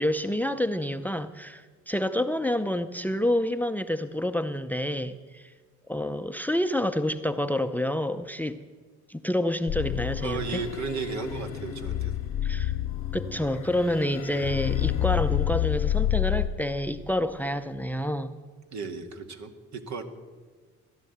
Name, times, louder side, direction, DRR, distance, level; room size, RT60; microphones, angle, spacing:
voice 1, 0.0-5.5 5.9-8.6 9.1-10.6 12.4-12.7 13.1-18.4, left 1 dB, 5° left, 0.6 m, -28 dB
sound 1, 9.7-16.5, left 12 dB, 85° left, 1.1 m, -29 dB
voice 2, 10.2-12.1 18.7-20.0, right 5 dB, 65° right, 1.8 m, -34 dB
16.0 x 11.0 x 8.0 m
cardioid pair, 90°, 30 cm